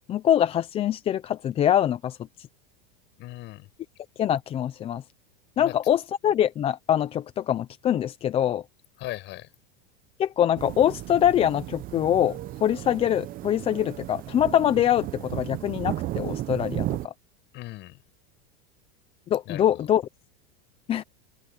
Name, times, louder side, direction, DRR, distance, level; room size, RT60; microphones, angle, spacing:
voice 1, 0.1-2.2 4.2-5.0 5.6-8.6 10.2-17.1 19.3-20.0 20.9-21.0, left 10 dB, 20° left, 0.6 m, -24 dB
voice 2, 3.2-3.7 5.6-5.8 9.0-9.5 17.5-18.0 19.5-19.9, left 17 dB, 40° left, 7.5 m, -38 dB
sound 1, 10.6-17.1, right 15 dB, 30° right, 0.9 m, -34 dB
supercardioid pair, 155°, 29 cm